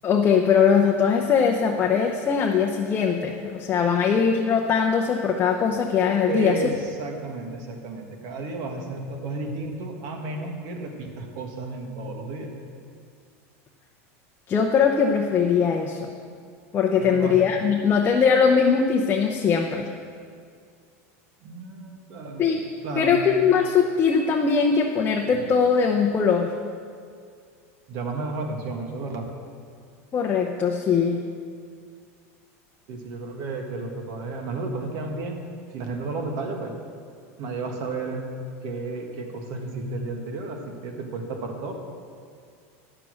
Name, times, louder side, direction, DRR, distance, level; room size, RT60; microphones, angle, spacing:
voice 1, 0.0-6.6 14.5-16.1 16.7-19.9 22.4-22.6 23.0-26.5 30.1-31.2, left 6 dB, 25° left, 1 dB, 0.7 m, -21 dB
voice 2, 6.3-12.5 17.0-17.5 21.4-22.5 22.8-23.2 25.3-25.4 27.9-29.3 32.9-36.8 37.4-38.2 38.6-41.7, right 3 dB, 55° right, 3 dB, 1.6 m, -32 dB
10.0 x 6.9 x 6.3 m, 2.2 s
supercardioid pair, 130°, 8 cm